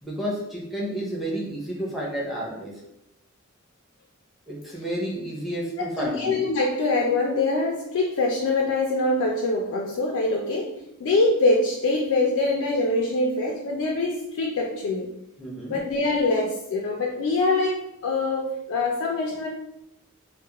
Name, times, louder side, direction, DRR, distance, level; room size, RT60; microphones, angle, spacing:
voice 1, 0.0-2.7 4.5-6.4 15.4-15.8, right 1 dB, ahead, -6 dB, 0.6 m, -31 dB
voice 2, 5.8-10.7 11.0-15.1 15.7-19.5, left 2 dB, 70° left, -1 dB, 0.3 m, -24 dB
2.3 x 2.0 x 2.9 m, 0.85 s
head